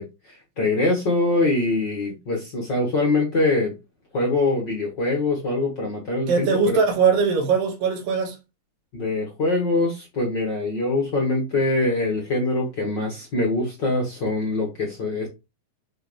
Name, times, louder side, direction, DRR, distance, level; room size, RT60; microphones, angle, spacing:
voice 1, 0.0-3.7 4.1-6.8 8.9-15.3, left 2 dB, 40° left, 1.7 m, -23 dB
voice 2, 6.3-8.4, right 5 dB, 75° right, 3.3 m, -20 dB
7.9 x 4.6 x 3.2 m
omnidirectional pair, 4.1 m